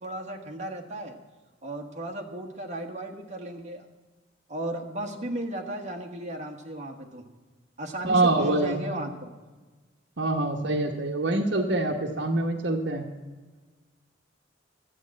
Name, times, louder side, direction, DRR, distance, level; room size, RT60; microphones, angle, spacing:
voice 1, 0.0-1.2 1.6-3.8 4.5-7.2 7.8-9.3, right 1 dB, 40° right, 1 dB, 1.3 m, -35 dB
voice 2, 8.0-8.8 10.2-13.0, right 2 dB, 65° right, 4 dB, 1.1 m, -25 dB
11.5 x 8.4 x 7.5 m, 1.3 s
head